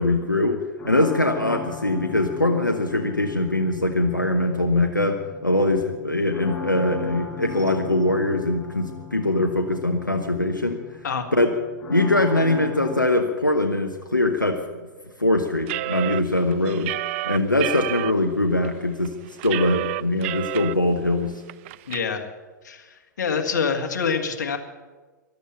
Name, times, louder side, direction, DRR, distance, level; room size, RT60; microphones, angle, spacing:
voice 1, 0.0-10.8 11.3-11.5 11.9-14.6 15.2-16.9 17.2-21.4, left 2 dB, 90° left, 4 dB, 1.1 m, -22 dB
sound 1, 0.8-13.1, left 5 dB, 20° left, 5.4 m, -38 dB
sound 2, 15.7-18.1 18.6-18.7 19.0-20.7 21.1-21.2 21.5-22.0, right 19 dB, 40° right, 0.4 m, -29 dB
voice 2, 21.9-22.3 22.6-24.6, left 6 dB, 65° left, 5 dB, 1.9 m, -26 dB
14.5 x 12.0 x 7.1 m, 1.3 s
figure-of-eight pair, 100°, 10 cm